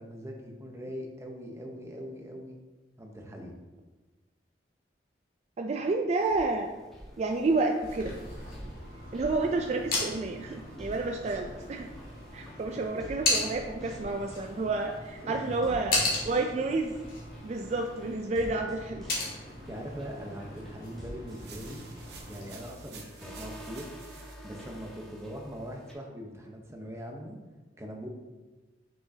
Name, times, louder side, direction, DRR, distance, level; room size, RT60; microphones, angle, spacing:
voice 1, 0.0-2.6 3.0-3.6 12.7-12.8 15.2-15.6 19.7-21.8 22.2-23.9 24.4-27.4 27.8-28.1, equal, 15° right, 1 dB, 0.8 m, -41 dB
voice 2, 5.6-6.7 7.2-8.2 9.1-11.9 12.3-16.0 16.2-17.0 17.4-19.1, right 3 dB, 40° right, 3 dB, 0.3 m, -30 dB
sound 1, 6.2-25.9, equal, ahead, 1.2 m, -49 dB
sound 2, 7.8-22.6, left 2 dB, 55° left, 1.8 m, -36 dB
sound 3, 21.3-24.3, right 5 dB, 65° right, 0.9 m, -50 dB
6.1 x 6.0 x 2.7 m, 1.2 s
head